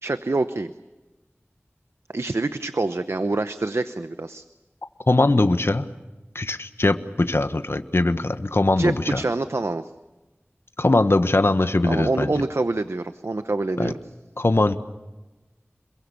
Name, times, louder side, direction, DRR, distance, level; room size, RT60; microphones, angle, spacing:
voice 1, 0.0-0.7 2.1-4.4 8.8-9.9 11.8-14.0, right 2 dB, 90° right, 11 dB, 0.8 m, -26 dB
voice 2, 5.1-5.9 6.3-9.2 10.8-12.3 13.8-13.9 14.4-14.8, left 2 dB, 65° left, 9 dB, 1.3 m, -21 dB
27.5 x 22.5 x 7.1 m, 1.1 s
wide cardioid pair, 40°, 4 cm